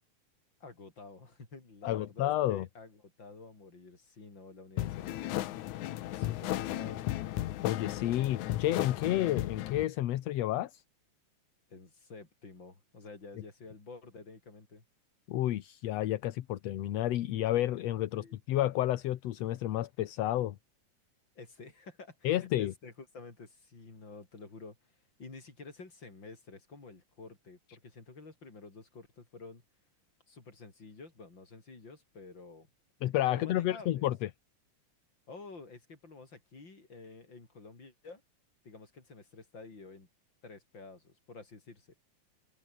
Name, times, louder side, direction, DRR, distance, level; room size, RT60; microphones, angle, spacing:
voice 1, 0.6-5.8 6.1-7.1 11.7-14.8 18.1-18.4 21.4-24.9 25.2-29.6 30.3-32.7 33.3-34.1 35.3-38.2 38.6-40.1 40.4-41.9, left 3 dB, 40° left, 5.5 m, -50 dB
voice 2, 1.8-2.7 7.6-10.8 15.3-20.6 22.2-22.7 33.0-34.3, left 14 dB, 70° left, 2.0 m, -30 dB
sound 1, 4.8-9.9, left 14 dB, 85° left, 2.4 m, -35 dB
open air
omnidirectional pair, 3.3 m